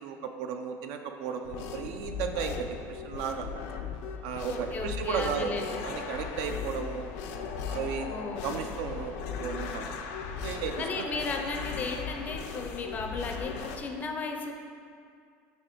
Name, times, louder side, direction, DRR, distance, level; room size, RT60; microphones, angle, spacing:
voice 1, 0.0-3.5 4.2-5.5 5.8-7.1 7.7-10.0 10.4-11.2, right 6 dB, 65° right, 6 dB, 0.5 m, -34 dB
sound 1, 1.4-13.8, left 6 dB, 80° left, 0.5 m, -37 dB
voice 2, 4.5-5.8 8.1-8.5 10.8-14.5, left 3 dB, 25° left, 3 dB, 0.5 m, -35 dB
4.8 x 4.2 x 5.0 m, 2.2 s
cardioid pair, 160°, 7 cm